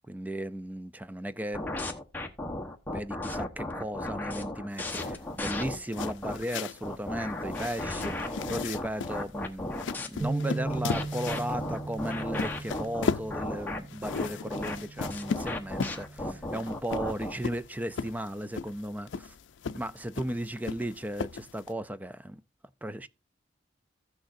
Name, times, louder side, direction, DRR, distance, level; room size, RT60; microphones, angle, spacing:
voice 1, 0.1-1.6 2.9-19.3 19.7-22.4 22.8-23.1, right 1 dB, 10° right, 0.4 m, -35 dB
sound 1, 1.5-6.4 6.8-10.1 10.7-17.4, left 1 dB, 10° left, 1.0 m, -35 dB
sound 2, 4.7-21.7, left 5 dB, 90° left, 0.4 m, -38 dB
sound 3, 10.2-16.5, right 3 dB, 35° right, 1.4 m, -38 dB
15.0 x 6.4 x 2.6 m
head